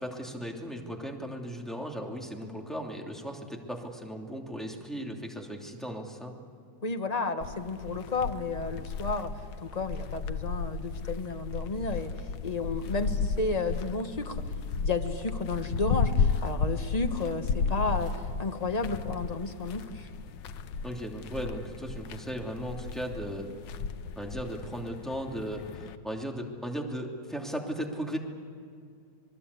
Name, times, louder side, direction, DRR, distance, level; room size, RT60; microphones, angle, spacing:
voice 1, 0.0-6.3 20.8-23.5 24.2-28.2, equal, ahead, 0 dB, 2.7 m, -36 dB
voice 2, 6.8-9.3 9.6-12.1 12.4-14.4 14.8-20.1, left 3 dB, 25° left, 7 dB, 1.2 m, -32 dB
sound 1, 7.4-26.0, left 5 dB, 80° left, 1.5 m, -34 dB
26.5 x 20.0 x 8.4 m, 2.3 s
omnidirectional pair, 2.0 m